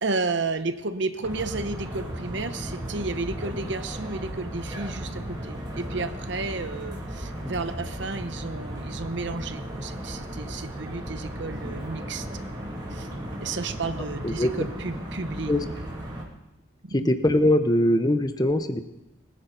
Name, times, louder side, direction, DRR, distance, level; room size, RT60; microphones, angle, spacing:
voice 1, 0.0-12.3 12.9-13.1 13.4-15.5 16.8-17.1, right 3 dB, 55° right, 10 dB, 0.8 m, -32 dB
sound 1, 1.2-16.2, equal, 20° right, 2.4 m, -35 dB
voice 2, 16.9-18.8, left 1 dB, 20° left, 9 dB, 0.8 m, -22 dB
23.0 x 10.0 x 3.9 m, 0.93 s
head